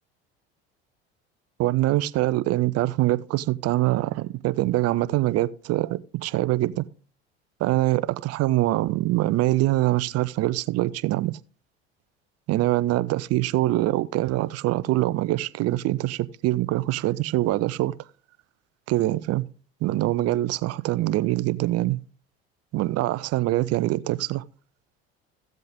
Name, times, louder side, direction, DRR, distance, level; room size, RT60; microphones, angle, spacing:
voice 1, 1.6-6.8 7.6-11.4 12.5-17.9 18.9-19.5 19.8-22.0 22.7-24.4, right 16 dB, 55° right, 0.8 m, -24 dB
15.0 x 7.6 x 3.6 m
hypercardioid pair, 80°, 31 cm